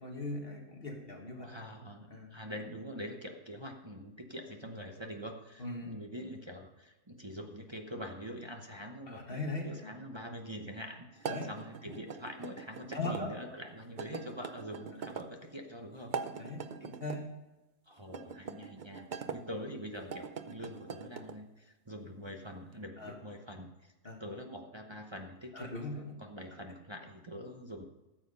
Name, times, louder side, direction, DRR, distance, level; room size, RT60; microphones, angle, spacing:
voice 1, 0.0-1.5 2.1-2.3 5.6-5.9 9.1-9.7 11.3-11.5 11.9-12.0 12.9-13.3 14.9-15.0 16.4-17.2 23.0-23.1 24.0-24.2 25.5-26.0, left 2 dB, 40° left, 1 dB, 1.9 m, -39 dB
voice 2, 1.4-16.2 17.9-23.9 24.2-25.7 26.2-27.9, equal, 25° right, 2 dB, 0.8 m, -44 dB
sound 1, 11.2-13.2 14.0-15.3 16.0-17.2 18.1-19.4 20.0-21.4, right 6 dB, 55° right, 0.5 m, -42 dB
13.5 x 7.5 x 5.5 m, 1.0 s
omnidirectional pair, 1.6 m